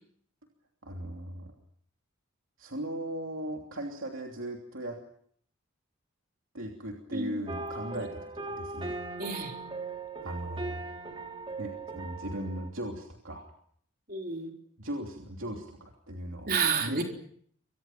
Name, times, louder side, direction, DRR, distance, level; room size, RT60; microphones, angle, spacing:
voice 1, 0.8-1.5 2.6-5.0 6.5-8.3 8.6-9.0 9.8-10.8 11.6-13.4 14.8-16.5 16.8-17.0, right 1 dB, 70° right, 1 dB, 3.0 m, -38 dB
voice 2, 7.1-7.4 7.9-8.0 9.2-9.5 14.1-14.5 16.5-17.0, right 5 dB, 45° right, 2 dB, 4.0 m, -30 dB
sound 1, 7.5-12.7, right 3 dB, 25° right, 2.4 m, -39 dB
29.0 x 24.5 x 6.0 m, 0.63 s
head